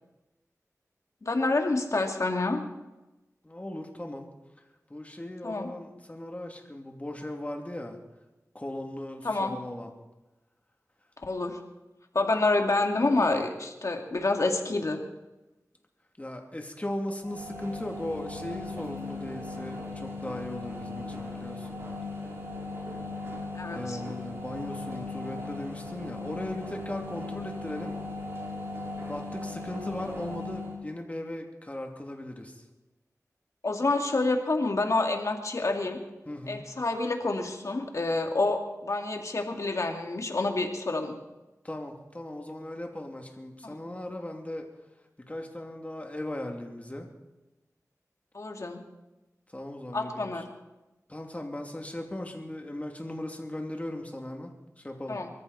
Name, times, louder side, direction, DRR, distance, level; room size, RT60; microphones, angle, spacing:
voice 1, 1.2-2.6 5.4-5.7 9.2-9.6 11.3-11.6 12.1-15.0 23.5-24.0 33.6-36.0 36.5-41.2 43.6-43.8 48.3-48.8 49.9-50.5 55.1-55.3, left 2 dB, 60° left, 3 dB, 2.1 m, -28 dB
voice 2, 3.4-4.3 4.9-8.0 8.5-9.9 16.2-21.8 23.7-28.0 29.1-32.6 36.2-36.6 41.6-44.7 45.3-47.1 49.5-50.4 51.1-55.2, left 1 dB, 25° left, 2 dB, 2.6 m, -38 dB
sound 1, 17.2-30.8, left 2 dB, 45° right, 4.6 m, -38 dB
24.0 x 14.0 x 4.2 m, 1.0 s
wide cardioid pair, 70°, 6 cm